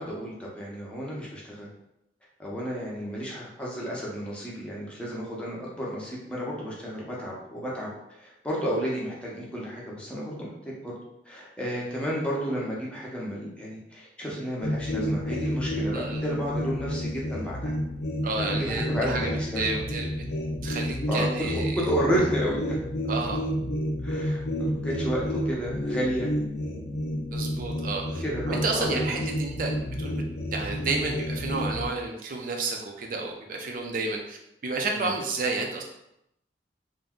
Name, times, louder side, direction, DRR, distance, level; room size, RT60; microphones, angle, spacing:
voice 1, 0.0-1.7 2.4-7.9 8.2-10.9 11.3-17.7 18.3-19.8 21.1-22.8 24.0-26.3 28.2-29.2 34.9-35.1, equal, 5° left, -5 dB, 0.7 m, -32 dB
sound 1, 14.6-31.9, equal, 65° left, 0.5 m, -30 dB
voice 2, 15.9-16.2 18.2-20.2 20.6-21.8 22.1-22.2 23.1-23.4 27.3-29.7 30.0-30.2 30.5-34.4 34.6-35.8, right 3 dB, 50° right, 1 dB, 0.5 m, -31 dB
2.6 x 2.2 x 3.5 m, 0.82 s
head